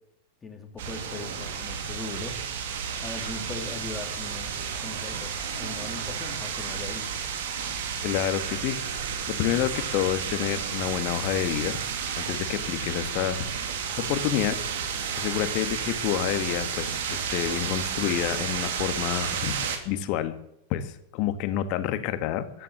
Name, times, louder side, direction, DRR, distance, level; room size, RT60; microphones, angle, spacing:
voice 1, 0.4-4.5 4.8-5.3 5.6-7.1, left 3 dB, 15° left, 4 dB, 2.8 m, -39 dB
sound 1, 0.8-19.8, right 7 dB, 55° right, 2.4 m, -32 dB
voice 2, 8.0-8.8 9.3-11.8 12.2-13.5 14.0-14.6 15.2-20.3 20.7-22.6, left 11 dB, 45° left, 11 dB, 1.6 m, -28 dB
sound 2, 8.6-15.0, right 2 dB, 75° right, 7.4 m, -50 dB
14.5 x 12.0 x 7.9 m, 0.83 s
figure-of-eight pair, 90°, 0 cm